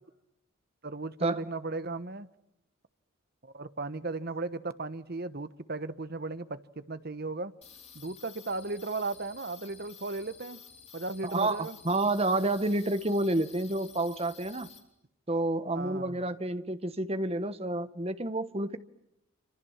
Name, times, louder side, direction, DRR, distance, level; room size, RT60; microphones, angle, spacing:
voice 1, 0.8-2.3 3.4-7.5 7.9-10.6 10.9-11.8 15.7-16.2, right 3 dB, 45° right, 1.2 m, -36 dB
sound 1, 7.6-14.8, left 7 dB, 30° left, 4.3 m, -52 dB
voice 2, 11.2-14.7 15.3-18.8, right 2 dB, 30° right, 1.2 m, -29 dB
27.5 x 26.0 x 7.3 m
head